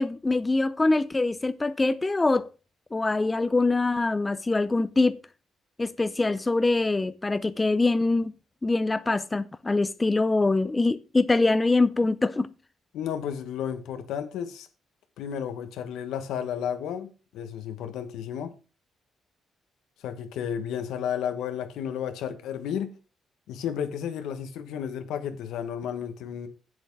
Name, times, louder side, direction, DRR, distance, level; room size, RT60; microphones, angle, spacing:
voice 1, 0.0-2.5 2.9-5.2 5.8-8.3 8.6-12.5, left 3 dB, 20° left, 0.5 m, -24 dB
voice 2, 12.9-14.7 15.2-18.5 20.0-23.0 23.5-26.5, left 8 dB, 85° left, 1.3 m, -32 dB
8.1 x 7.7 x 4.8 m
cardioid pair, 90°, 0 cm